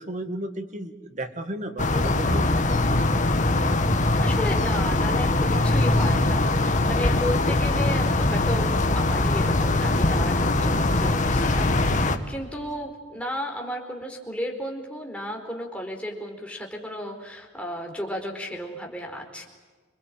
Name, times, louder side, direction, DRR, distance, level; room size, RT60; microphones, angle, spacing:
voice 1, 0.0-2.5, right 1 dB, 40° right, 7 dB, 2.1 m, -33 dB
sound 1, 1.8-12.2, left 2 dB, 40° left, 1.7 m, -22 dB
voice 2, 4.2-19.4, equal, 5° left, 1 dB, 4.5 m, -34 dB
27.0 x 21.5 x 9.1 m, 1.4 s
head